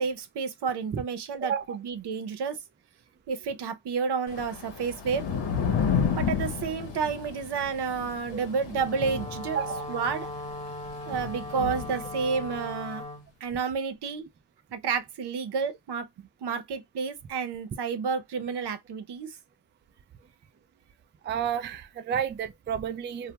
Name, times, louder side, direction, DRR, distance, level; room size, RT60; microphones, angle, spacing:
voice 1, 0.0-2.6 3.3-5.3 6.1-9.6 9.9-10.3 11.1-13.0 13.4-14.2 14.7-19.3, right 5 dB, 70° right, 0.7 m, -30 dB
voice 2, 1.4-1.8 8.3-8.4 9.5-9.9 21.2-23.3, right 8 dB, 30° right, 0.3 m, -31 dB
Thunder / Rain, 4.3-12.6, left 7 dB, 85° left, 0.9 m, -32 dB
Wind instrument woodwind instrument, 8.8-13.3, left 2 dB, 15° left, 0.8 m, -38 dB
2.2 x 2.1 x 2.9 m
cardioid pair, 60°, 42 cm